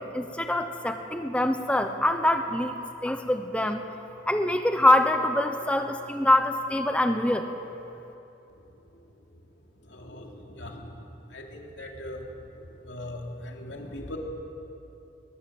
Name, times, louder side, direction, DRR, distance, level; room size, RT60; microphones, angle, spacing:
voice 1, 0.0-2.7 3.0-3.8 4.3-7.5, left 1 dB, 5° left, 6 dB, 0.9 m, -24 dB
voice 2, 11.8-12.2 12.9-13.2 13.7-14.2, left 1 dB, 85° left, 0 dB, 3.1 m, -37 dB
21.5 x 21.0 x 7.8 m, 2.9 s
head